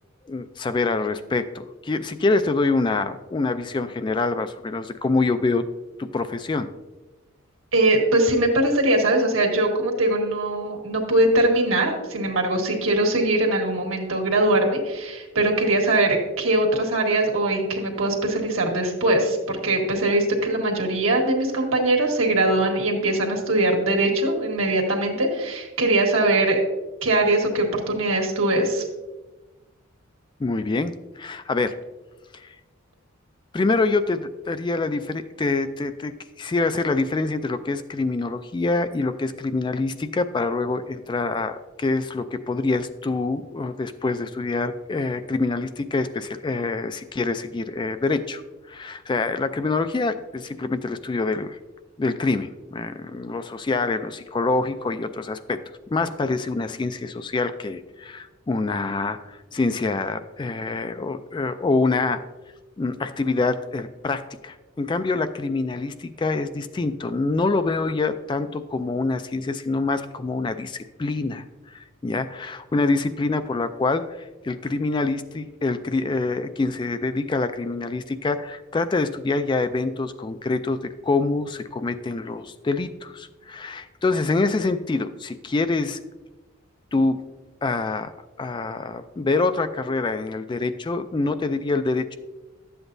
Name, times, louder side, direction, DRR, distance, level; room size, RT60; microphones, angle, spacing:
voice 1, 0.3-5.7 6.0-6.7 30.4-31.8 32.3-32.6 33.5-36.1 36.4-48.4 48.7-51.6 52.0-55.6 55.9-62.2 62.8-86.0 86.9-87.2 87.6-88.1 88.4-92.2, left 3 dB, 20° left, 10 dB, 0.3 m, -25 dB
voice 2, 7.7-26.6 27.0-28.8, right 2 dB, 80° right, 1 dB, 1.7 m, -21 dB
12.0 x 7.9 x 2.6 m, 1.1 s
head